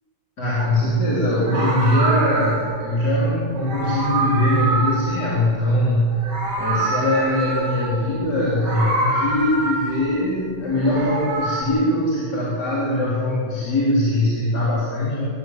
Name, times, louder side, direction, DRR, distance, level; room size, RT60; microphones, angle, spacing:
voice 1, 0.4-6.2 6.6-15.3, left 1 dB, 30° left, -6 dB, 4.5 m, -21 dB
Meow, 0.6-0.8 1.4-2.8 3.6-5.8 6.1-8.0 8.5-10.1 10.7-11.6, right 2 dB, 75° right, 6.0 m, -26 dB
25.0 x 16.0 x 9.4 m, 2.3 s
omnidirectional pair, 3.6 m